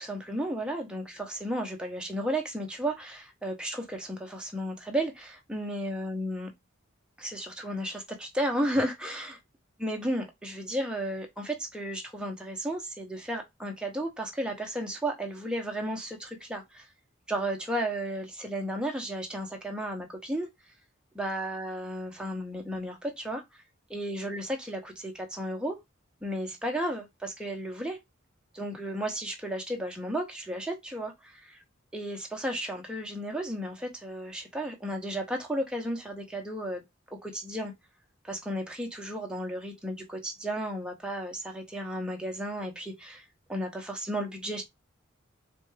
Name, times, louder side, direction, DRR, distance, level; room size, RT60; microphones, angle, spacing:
voice 1, 0.0-6.5 7.2-9.4 9.8-16.9 17.3-20.5 21.1-23.4 23.9-25.8 26.2-28.0 28.5-31.6 31.9-36.8 37.1-37.7 38.2-44.6, right 1 dB, 5° right, 0.7 m, -33 dB
4.1 x 2.3 x 3.2 m
head